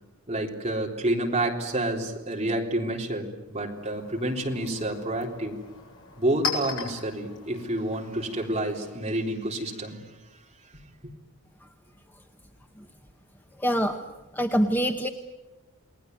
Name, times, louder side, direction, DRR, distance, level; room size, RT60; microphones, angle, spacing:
voice 1, 0.3-5.6 6.2-10.0, right 1 dB, 30° right, 0 dB, 3.9 m, -29 dB
Chink clink, 3.5-9.0, left 4 dB, 55° left, 7.3 m, -39 dB
voice 2, 13.6-14.0 14.3-15.1, equal, 10° left, 5 dB, 1.0 m, -24 dB
29.5 x 20.0 x 9.5 m, 1.1 s
head